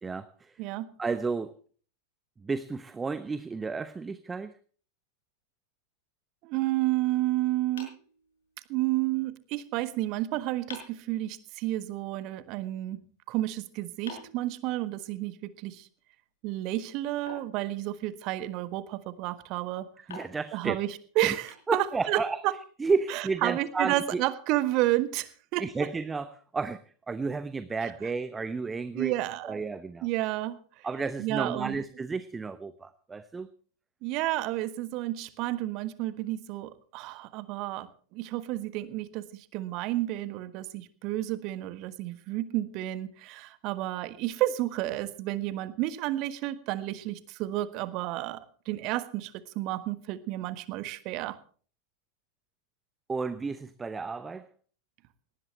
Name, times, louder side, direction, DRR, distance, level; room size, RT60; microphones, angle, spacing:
voice 1, 0.0-0.6 1.0-1.5 2.4-4.5 20.1-20.8 21.2-21.3 21.7-22.4 22.8-24.2 25.6-26.8 27.1-29.1 29.4-30.1 30.8-33.5 53.1-54.5, right 4 dB, 15° right, 14 dB, 0.8 m, -32 dB
voice 2, 0.6-1.0 6.4-7.9 8.7-13.0 13.3-15.9 16.4-19.9 20.5-22.5 23.1-25.6 27.8-27.9 28.9-29.6 30.0-30.9 31.2-31.8 34.0-51.4, right 16 dB, 40° right, 14 dB, 1.4 m, -31 dB
sound 1, 7.8-8.9 10.1-10.2 10.7-11.1 14.1-15.3 17.3-18.3 20.1-22.2, left 4 dB, 65° left, 6.3 m, -48 dB
19.0 x 18.0 x 3.3 m, 0.43 s
figure-of-eight pair, 90°, 0 cm